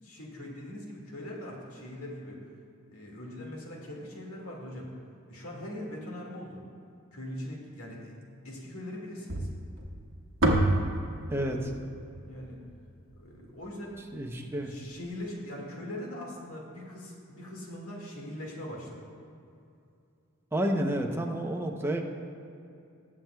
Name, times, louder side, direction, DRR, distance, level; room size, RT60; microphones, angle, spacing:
voice 1, 0.0-2.4 2.9-4.9 5.3-6.6 7.1-8.1 8.4-9.5 12.2-12.6 13.2-14.0 14.6-19.1, left 1 dB, 85° left, -2 dB, 2.0 m, -41 dB
sound 1, 9.3-13.6, right 1 dB, 60° right, 1.1 m, -30 dB
voice 2, 11.3-11.7 14.1-14.7 20.5-22.0, right 1 dB, 10° right, 2 dB, 0.7 m, -30 dB
19.5 x 7.4 x 2.3 m, 2.5 s
head